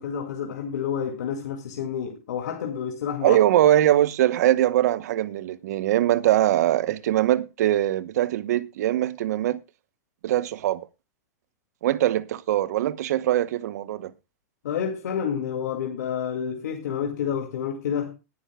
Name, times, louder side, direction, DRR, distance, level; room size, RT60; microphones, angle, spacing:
voice 1, 0.0-3.4 14.6-18.1, left 8 dB, 80° left, 2.2 m, -29 dB
voice 2, 3.2-9.6 10.2-10.9 11.8-14.1, right 13 dB, 70° right, 0.9 m, -22 dB
20.0 x 9.8 x 2.3 m
supercardioid pair, 150°, 9 cm